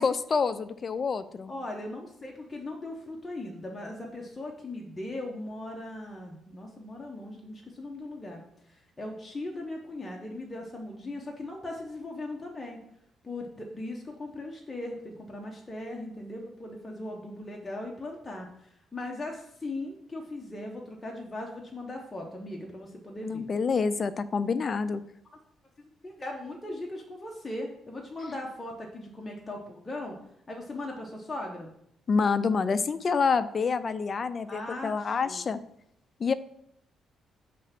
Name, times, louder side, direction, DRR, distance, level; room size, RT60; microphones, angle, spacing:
voice 1, 0.0-1.5 23.2-25.0 32.1-35.6 36.2-36.3, left 5 dB, 40° left, 14 dB, 0.5 m, -27 dB
voice 2, 1.5-12.8 13.2-23.5 25.8-30.1 30.5-31.7 34.5-35.5, left 1 dB, 20° left, -1 dB, 1.1 m, -39 dB
7.4 x 3.4 x 5.9 m, 0.74 s
cardioid pair, 90°, 0 cm